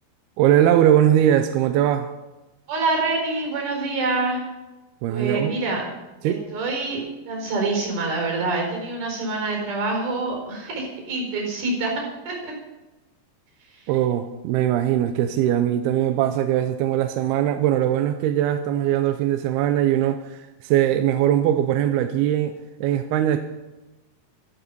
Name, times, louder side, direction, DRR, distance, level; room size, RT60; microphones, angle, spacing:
voice 1, 0.4-2.1 5.0-5.6 6.2-6.5 13.9-22.6 22.8-23.4, right 11 dB, 80° right, 8 dB, 2.5 m, -21 dB
voice 2, 2.7-4.4 5.1-5.8 6.2-7.0 7.3-12.5 13.7-13.9, right 3 dB, 65° right, 1 dB, 6.4 m, -26 dB
13.5 x 12.5 x 5.4 m, 1.1 s
omnidirectional pair, 4.7 m